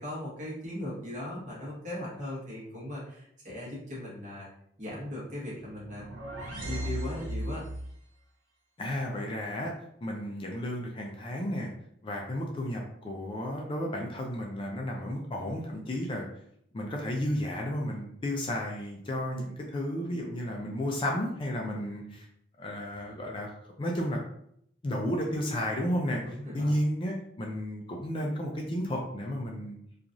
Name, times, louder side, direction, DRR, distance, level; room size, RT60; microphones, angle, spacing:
voice 1, 0.0-4.5 4.8-6.1 6.4-7.6 21.7-22.0 26.2-26.7, left 1 dB, 40° right, -6 dB, 1.3 m, -38 dB
sound 1, 5.7-8.0, equal, 90° right, 0.5 m, -36 dB
voice 2, 8.8-9.7 10.0-11.7 12.0-16.3 16.7-22.3 22.6-23.5 23.8-24.2 24.8-26.2 26.5-29.8, equal, 25° left, 0 dB, 0.4 m, -32 dB
3.0 x 2.4 x 2.5 m, 0.71 s
head